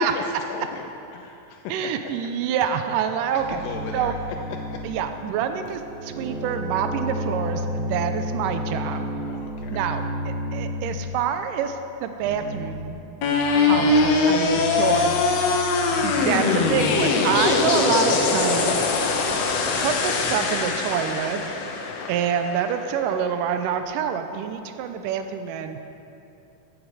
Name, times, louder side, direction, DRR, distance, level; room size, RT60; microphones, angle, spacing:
voice 1, 0.0-1.9 3.3-4.1 4.5-4.8 9.2-9.8 13.4-15.0 21.9-22.2, left 6 dB, 85° left, 1 dB, 2.4 m, -35 dB
voice 2, 1.7-3.6 3.9-4.1 4.8-9.1 9.7-13.0 13.5-15.1 15.5-15.7 16.0-18.9 19.8-21.4 22.1-25.8, right 8 dB, 85° right, 8 dB, 2.2 m, -27 dB
sound 1, 3.4-11.1 12.1-12.8 13.4-14.0 14.2-18.3, equal, 65° right, 2.1 m, -33 dB
sound 2, 13.2-23.3, left 4 dB, 65° left, 1.8 m, -22 dB
14.5 x 8.8 x 4.8 m, 2.8 s
omnidirectional pair, 3.8 m